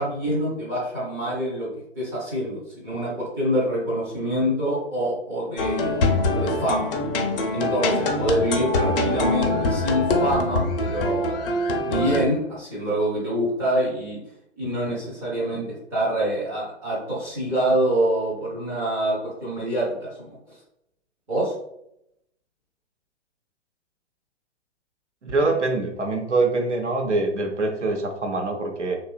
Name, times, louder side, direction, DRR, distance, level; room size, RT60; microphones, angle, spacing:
voice 1, 0.0-1.7 2.0-5.9 6.3-6.9 7.5-11.4 11.7-14.2 14.6-20.4 21.3-21.5, right 1 dB, 10° right, -7 dB, 0.4 m, -26 dB
sound 1, 5.6-12.3, left 2 dB, 55° left, 0.5 m, -23 dB
voice 2, 25.2-29.0, right 3 dB, 85° right, 3 dB, 0.7 m, -24 dB
2.9 x 2.3 x 2.3 m, 0.78 s
figure-of-eight pair, 115°, 35 cm